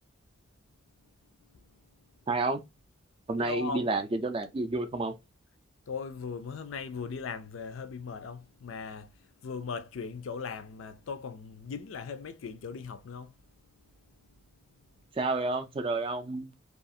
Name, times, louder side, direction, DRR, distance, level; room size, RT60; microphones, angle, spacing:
voice 1, 2.3-2.6 3.3-5.1 15.1-16.5, right 3 dB, 25° right, 0.3 m, -30 dB
voice 2, 3.4-3.9 5.9-9.1 9.4-13.3, left 5 dB, 80° left, 0.4 m, -38 dB
2.4 x 2.4 x 2.6 m
head